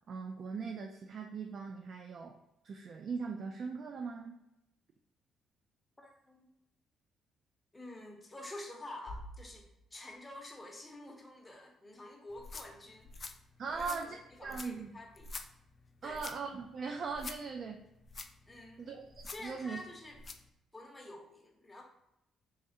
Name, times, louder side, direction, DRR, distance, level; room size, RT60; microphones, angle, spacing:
voice 1, 0.1-2.4 2.6-4.4 13.6-14.2 14.4-14.9 16.0-17.8 18.8-19.0 19.4-19.8, right 5 dB, 55° right, 3 dB, 0.3 m, -40 dB
voice 2, 6.0-6.5 7.7-13.1 13.7-15.3 16.0-16.3 18.5-19.0 19.2-20.2 20.7-21.8, left 1 dB, 15° left, 1 dB, 0.8 m, -49 dB
Bass drum, 9.1-10.7, left 1 dB, 75° left, 0.7 m, -50 dB
sound 1, 12.3-20.5, left 3 dB, 40° left, 0.3 m, -49 dB
3.4 x 3.2 x 2.7 m, 0.86 s
cardioid pair, 90°, 0 cm